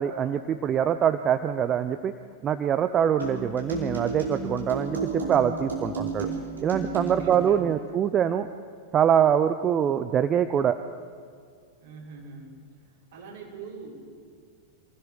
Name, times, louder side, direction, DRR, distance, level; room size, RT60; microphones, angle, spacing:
voice 1, 0.0-2.1 2.4-6.3 6.6-8.5 8.9-10.8, right 9 dB, 30° right, 11 dB, 0.7 m, -24 dB
sound 1, 3.2-7.5, right 3 dB, 75° right, 4.8 m, -32 dB
voice 2, 7.0-7.7 11.8-12.5 13.1-14.0, right 4 dB, 60° right, -3 dB, 6.5 m, -43 dB
27.5 x 16.5 x 6.5 m, 2.1 s
figure-of-eight pair, 90°, 0 cm